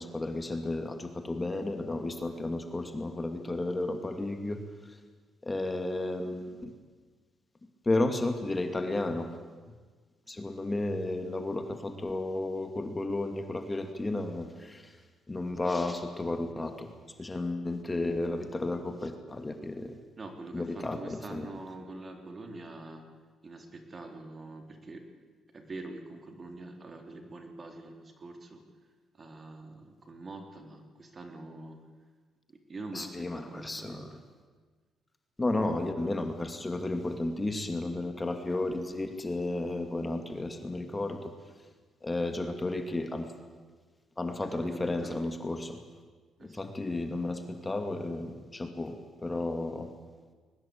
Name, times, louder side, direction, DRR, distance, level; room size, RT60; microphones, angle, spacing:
voice 1, 0.0-5.0 5.4-6.7 7.9-9.3 10.3-15.0 15.3-19.9 20.5-21.5 32.9-34.2 35.4-41.3 42.0-43.3 44.2-45.8 46.4-49.9, left 2 dB, 20° left, 6 dB, 2.4 m, -33 dB
voice 2, 20.2-23.0 23.4-25.1 25.5-28.6 29.2-31.9 32.5-34.1 44.6-45.2 46.4-46.6, right 2 dB, 35° right, 5 dB, 3.6 m, -44 dB
22.0 x 20.0 x 8.8 m, 1.4 s
cardioid pair, 90°, 0 cm